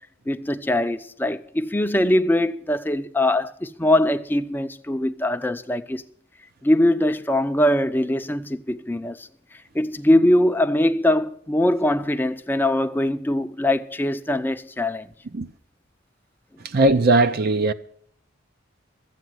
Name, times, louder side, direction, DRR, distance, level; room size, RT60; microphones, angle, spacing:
voice 1, 0.3-6.0 6.6-9.2 9.7-15.1, left 1 dB, 10° left, 0.5 m, -22 dB
voice 2, 16.6-17.7, right 2 dB, 50° right, 0.6 m, -18 dB
13.5 x 8.4 x 7.8 m
head